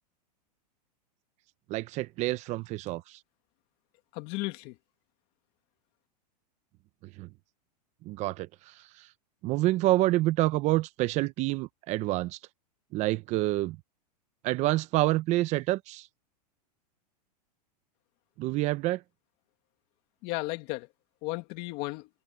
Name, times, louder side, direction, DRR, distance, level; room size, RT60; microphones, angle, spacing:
voice 1, 1.7-3.2 7.2-7.3 8.0-9.1 9.4-12.4 12.9-13.8 14.4-16.1 18.4-19.0, right 17 dB, 35° right, 0.8 m, -28 dB
voice 2, 4.1-4.7 20.2-20.9 21.2-22.1, left 22 dB, 45° left, 2.3 m, -34 dB
supercardioid pair, 145°, 21 cm